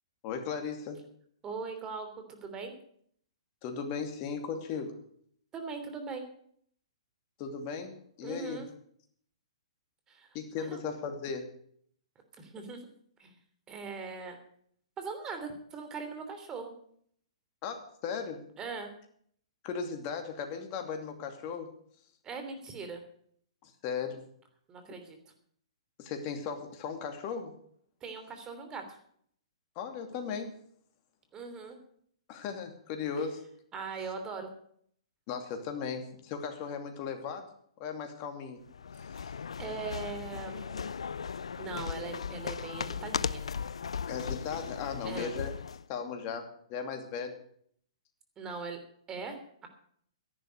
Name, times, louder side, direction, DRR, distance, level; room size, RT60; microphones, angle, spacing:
voice 1, 0.2-1.0 3.6-5.0 7.4-8.6 10.3-11.5 17.6-18.5 19.6-21.7 23.6-24.2 26.0-27.6 29.8-30.6 32.3-33.5 35.3-37.5 37.8-38.6 44.1-45.5 45.9-47.4, left 6 dB, 35° left, 5 dB, 2.6 m, -37 dB
voice 2, 1.4-2.8 5.5-6.3 8.2-8.7 10.1-10.3 10.6-10.8 12.4-12.8 13.2-13.3 13.7-14.4 15.0-16.7 18.6-18.9 22.2-23.0 24.7-25.2 28.0-29.0 31.3-31.8 33.7-34.5 39.1-39.3 39.6-41.0 41.6-43.4 45.0-45.3 48.4-48.8 49.1-49.7, right 4 dB, 20° right, 6 dB, 3.1 m, -40 dB
sound 1, 38.7-45.9, left 6 dB, 80° left, 0.5 m, -37 dB
13.0 x 11.0 x 6.5 m, 0.63 s
hypercardioid pair, 130°, 3 cm